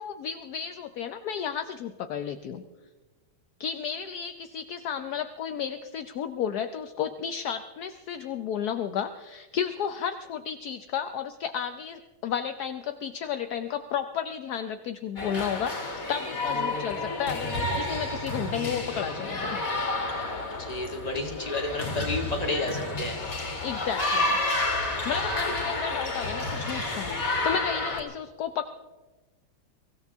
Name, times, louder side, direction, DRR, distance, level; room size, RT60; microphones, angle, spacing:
voice 1, 0.0-2.6 3.6-19.7 23.6-24.4 25.0-28.7, left 8 dB, 65° left, 8 dB, 1.0 m, -33 dB
sound 1, 15.2-28.0, left 2 dB, 40° left, 2.8 m, -30 dB
voice 2, 20.6-23.2, left 2 dB, 20° left, 1 dB, 2.2 m, -31 dB
23.5 x 16.5 x 3.6 m, 1.2 s
omnidirectional pair, 2.3 m